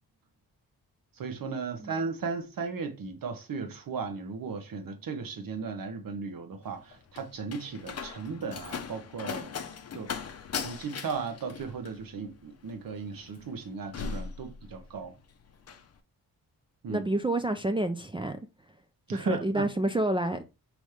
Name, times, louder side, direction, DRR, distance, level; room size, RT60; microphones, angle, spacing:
voice 1, 1.2-9.5 9.9-10.3 10.6-15.1 16.8-17.0 19.1-19.7, right 5 dB, 65° right, 1.0 m, -36 dB
Slam, 6.6-15.1 15.4-15.9, left 6 dB, 40° left, 0.6 m, -39 dB
voice 2, 16.9-18.4 19.1-20.4, right 1 dB, 15° right, 0.4 m, -28 dB
5.2 x 3.1 x 3.2 m
cardioid pair, 95°, 37 cm